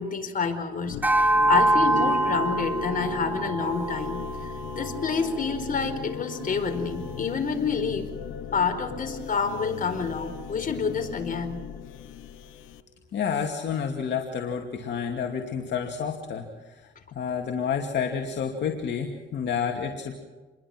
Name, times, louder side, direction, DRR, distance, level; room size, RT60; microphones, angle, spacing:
voice 1, 0.0-4.2 4.7-8.1 8.5-11.6, left 5 dB, 45° left, 5 dB, 4.5 m, -28 dB
sound 1, 0.8-12.8, left 9 dB, 80° left, 1.1 m, -37 dB
sound 2, 1.0-5.6, right 1 dB, 10° right, 1.1 m, -25 dB
sound 3, 2.0-12.5, right 3 dB, 40° right, 3.8 m, -43 dB
voice 2, 13.1-16.9 17.2-20.2, left 7 dB, 60° left, 2 dB, 2.5 m, -29 dB
28.5 x 22.0 x 6.2 m, 1.3 s
cardioid pair, 90°, 20 cm